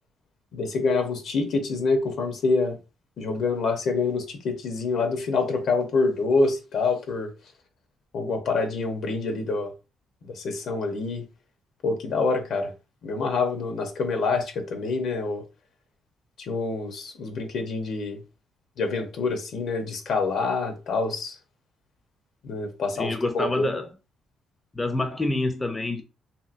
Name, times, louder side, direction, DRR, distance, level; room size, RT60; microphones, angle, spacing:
voice 1, 0.5-2.8 3.2-7.3 8.1-9.7 10.3-11.2 11.8-12.7 13.0-15.4 16.4-18.2 18.8-21.4 22.4-23.8, left 3 dB, 65° left, 0.8 m, -26 dB
voice 2, 23.0-23.9 24.7-26.0, left 2 dB, 20° left, 0.4 m, -27 dB
2.8 x 2.7 x 2.5 m
cardioid pair, 90°, 0 cm